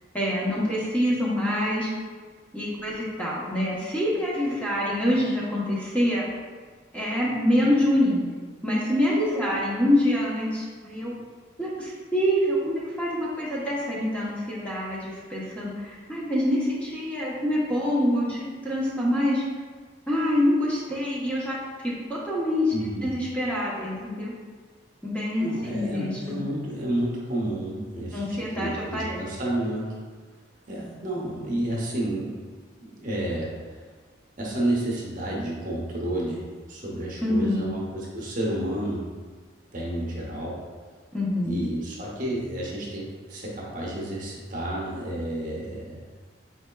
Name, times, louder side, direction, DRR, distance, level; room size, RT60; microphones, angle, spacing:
voice 1, 0.1-1.9 2.5-6.3 6.9-8.2 8.6-11.2 11.6-19.4 20.1-21.6 22.2-22.7 23.0-24.3 25.0-26.4 28.1-29.2 37.2-37.7 41.1-41.6, left 1 dB, 5° left, -8 dB, 0.8 m, -25 dB
voice 2, 22.7-23.1 25.4-28.2 28.6-30.0 30.7-32.3 32.8-33.5 34.4-36.4 36.7-39.1 39.7-40.6 41.4-46.0, right 1 dB, 45° right, -5 dB, 0.8 m, -30 dB
4.5 x 4.2 x 2.2 m, 1.5 s
head